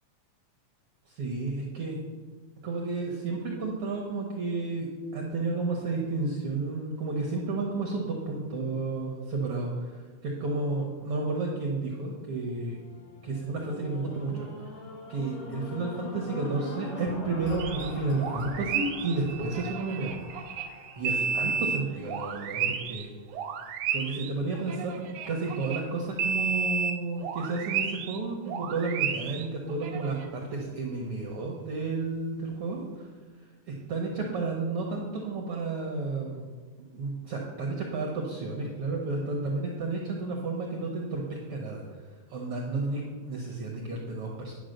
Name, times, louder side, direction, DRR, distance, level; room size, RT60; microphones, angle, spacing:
voice 1, 1.1-2.0 2.6-9.9 10.2-12.8 13.2-14.5 15.1-20.1 20.9-23.1 23.9-24.9 25.3-33.1 33.7-36.4 36.9-41.8 42.3-44.5, right 3 dB, 60° right, 0 dB, 1.6 m, -32 dB
sound 1, 12.3-22.6 23.2-23.3, left 2 dB, 60° left, 2.8 m, -43 dB
sound 2, 17.6-17.9 18.2-23.1 23.3-25.9 26.2-28.2 28.5-30.3, right 6 dB, 85° right, 1.3 m, -32 dB
10.5 x 6.0 x 6.5 m, 1.5 s
omnidirectional pair, 3.6 m